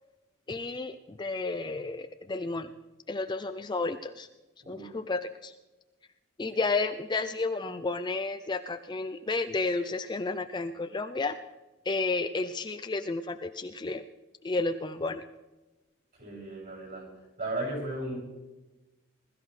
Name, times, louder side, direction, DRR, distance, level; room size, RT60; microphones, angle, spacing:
voice 1, 0.5-2.7 3.1-4.3 4.7-5.5 6.4-11.4 11.9-14.0 14.4-15.2, left 3 dB, 20° left, 9 dB, 0.4 m, -32 dB
voice 2, 16.2-17.1 17.4-18.1, right 2 dB, 45° right, -3 dB, 6.4 m, -35 dB
21.0 x 13.5 x 3.2 m, 1.1 s
head